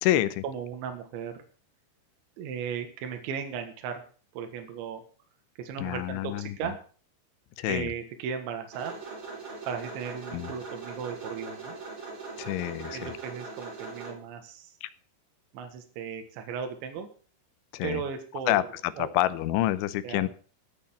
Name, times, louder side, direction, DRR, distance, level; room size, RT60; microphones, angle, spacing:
voice 1, 0.4-1.4 2.4-4.0 4.3-5.0 5.6-6.8 7.7-9.0 9.7-11.8 12.9-14.7 15.5-17.1 17.8-18.6 19.0-19.1 20.0-20.3, right 7 dB, 75° right, 6 dB, 3.9 m, -36 dB
voice 2, 5.8-6.5 7.6-7.9 10.3-10.5 12.4-13.1 14.8-14.9 17.7-18.0 18.5-20.3, left 15 dB, 85° left, 15 dB, 3.2 m, -27 dB
sound 1, 8.7-14.1, right 4 dB, 25° right, 5.2 m, -41 dB
17.5 x 6.9 x 7.2 m, 0.42 s
omnidirectional pair, 5.4 m